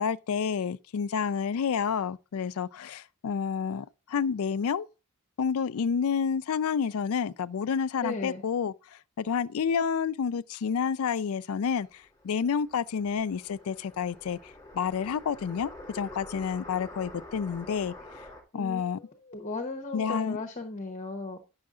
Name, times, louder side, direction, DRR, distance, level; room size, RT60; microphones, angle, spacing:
voice 1, 0.0-4.9 5.4-8.7 9.2-11.9 12.2-17.9 18.5-19.0 19.9-20.4, left 6 dB, 65° left, 0.4 m, -29 dB
voice 2, 8.0-8.4 18.5-21.4, left 3 dB, 35° left, 1.0 m, -36 dB
sound 1, 11.6-18.4, left 1 dB, 15° left, 2.6 m, -47 dB
9.6 x 6.3 x 3.7 m
head